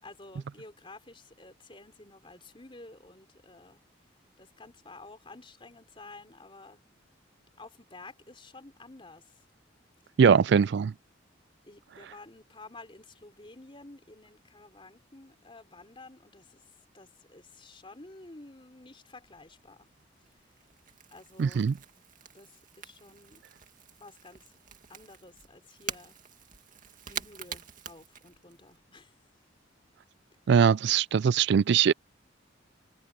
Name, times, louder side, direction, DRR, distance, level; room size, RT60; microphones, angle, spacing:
voice 1, 0.0-3.8 4.4-6.8 7.6-9.3 11.7-16.6 16.9-19.9 21.1-22.0 22.3-23.5 24.0-26.2 27.1-29.1, left 2 dB, 25° left, 3.9 m, -51 dB
voice 2, 10.2-10.9 21.4-21.8 30.5-31.9, right 7 dB, 60° right, 0.3 m, -21 dB
Crackle / Crack, 19.2-28.8, right 8 dB, 45° right, 2.2 m, -45 dB
head